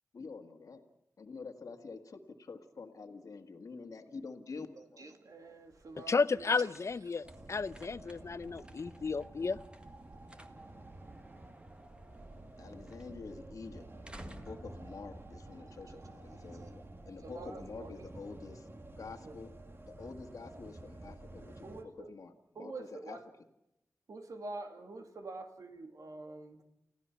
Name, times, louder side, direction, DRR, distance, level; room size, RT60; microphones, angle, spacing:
voice 1, 0.1-0.8 1.2-5.2 12.6-13.8 14.2-18.7 19.0-19.5 19.9-23.2, left 4 dB, 80° left, 6 dB, 1.7 m, -47 dB
voice 2, 4.8-6.7 15.9-16.0 16.6-16.7 17.2-18.1 19.2-19.3 21.6-22.1 22.6-23.2 24.1-26.6, right 2 dB, 85° right, 4 dB, 2.5 m, -46 dB
sound 1, 5.4-16.1, right 1 dB, 20° right, 1.8 m, -58 dB
voice 3, 6.0-9.6, left 4 dB, 55° left, 16 dB, 0.6 m, -33 dB
sound 2, 7.2-21.8, right 2 dB, 40° right, 1.8 m, -50 dB
29.5 x 15.0 x 5.8 m, 0.86 s
wide cardioid pair, 60°, 6 cm